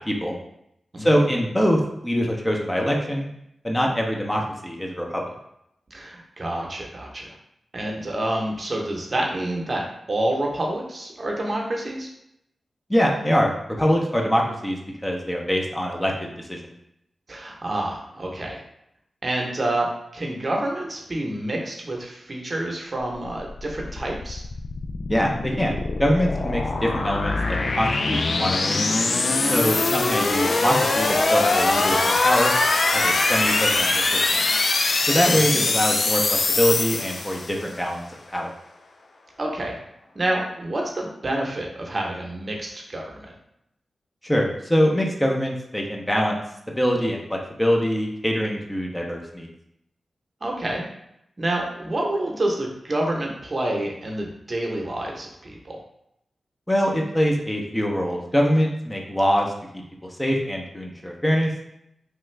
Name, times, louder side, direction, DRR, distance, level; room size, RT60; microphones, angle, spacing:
voice 1, 1.0-3.3 3.6-5.2 12.9-16.7 25.1-28.8 29.5-32.5 32.9-33.9 34.3-34.4 35.1-38.0 38.3-38.5 44.2-46.4 46.8-49.5 56.7-59.5 60.2-61.5, equal, 15° left, 0 dB, 0.6 m, -23 dB
voice 2, 5.9-7.3 7.7-12.1 17.3-18.6 19.2-24.4 35.3-35.6 39.4-39.8 40.1-43.3 50.4-50.8 51.4-55.8, right 1 dB, 45° right, -1 dB, 0.8 m, -28 dB
sound 1, 23.1-37.7, left 3 dB, 65° left, 0.3 m, -23 dB
3.2 x 2.3 x 3.2 m, 0.79 s
cardioid pair, 45°, 0 cm